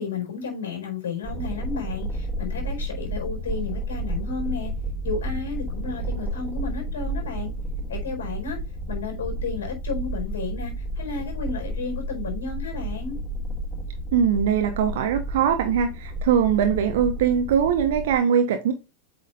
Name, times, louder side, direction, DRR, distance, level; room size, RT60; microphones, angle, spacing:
voice 1, 0.0-4.7 5.0-7.5 7.9-8.6 8.9-13.2, left 5 dB, 65° left, 4.3 m, -32 dB
sound 1, 1.2-18.2, right 1 dB, ahead, 3.9 m, -31 dB
voice 2, 14.1-18.7, right 8 dB, 55° right, 1.0 m, -21 dB
8.4 x 5.7 x 2.5 m
figure-of-eight pair, 90°, 0 cm